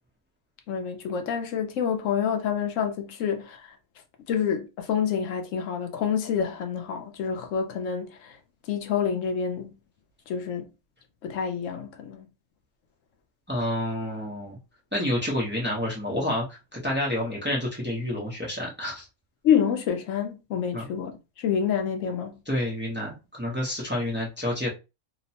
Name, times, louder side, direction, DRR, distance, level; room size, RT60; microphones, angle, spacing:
voice 1, 0.7-3.7 4.3-8.3 8.7-9.7 10.3-10.6 11.2-12.3 19.4-21.1 21.4-22.4, left 7 dB, 70° left, 0.9 m, -27 dB
voice 2, 13.5-14.6 14.9-19.0 20.7-20.9 22.5-24.7, left 1 dB, 15° right, 0.4 m, -29 dB
2.9 x 2.0 x 2.7 m
omnidirectional pair, 1.5 m